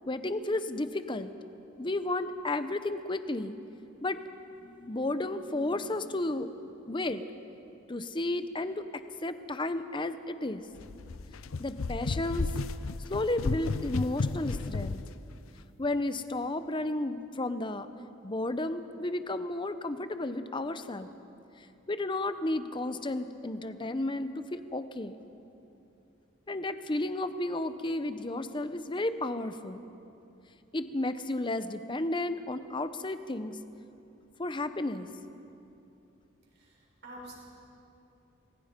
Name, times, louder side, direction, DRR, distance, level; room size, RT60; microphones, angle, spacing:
voice 1, 0.1-1.3 1.8-3.6 4.0-4.2 4.6-6.5 6.9-7.2 7.9-10.6 11.6-12.5 13.1-15.0 15.8-17.9 18.2-21.1 21.6-25.2 26.5-29.8 30.7-33.6 34.4-35.1, left 2 dB, 25° left, 11 dB, 0.7 m, -33 dB
sound 1, 10.8-15.1, left 3 dB, 85° left, 0.6 m, -33 dB
voice 2, 36.5-37.3, right 1 dB, 55° right, -3 dB, 6.2 m, -48 dB
28.0 x 20.5 x 5.2 m, 2.9 s
head